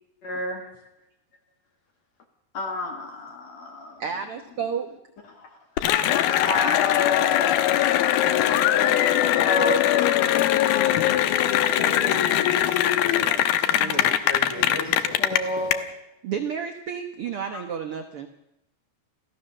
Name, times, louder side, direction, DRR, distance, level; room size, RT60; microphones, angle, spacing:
voice 1, 0.2-0.7 2.5-4.0 5.3-5.6 6.3-7.6 8.7-11.1 12.1-12.3 13.6-14.2 14.5-14.8 15.2-15.9 17.5-17.6, left 1 dB, 50° left, 3 dB, 3.1 m, -33 dB
voice 2, 4.0-4.9 11.8-12.3 13.8-14.0 16.2-18.3, right 7 dB, 65° right, 7 dB, 1.4 m, -31 dB
Cheering / Applause, 5.8-15.7, left 12 dB, 85° left, 2.9 m, -21 dB
voice 3, 6.9-7.4 12.9-15.2, left 2 dB, 5° left, 2 dB, 4.2 m, -38 dB
27.0 x 16.0 x 6.7 m, 0.83 s
omnidirectional pair, 4.2 m